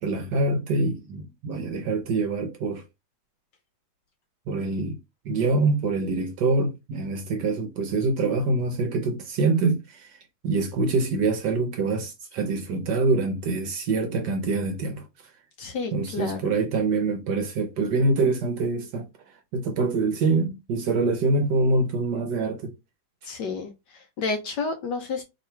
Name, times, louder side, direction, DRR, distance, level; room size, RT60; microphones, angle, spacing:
voice 1, 0.0-2.8 4.5-5.0 5.2-10.2 10.4-15.3 15.9-22.7, right 3 dB, 65° right, 1.1 m, -25 dB
voice 2, 15.6-16.6 23.2-25.2, left 4 dB, 65° left, 1.1 m, -31 dB
3.2 x 3.0 x 4.3 m
omnidirectional pair, 2.3 m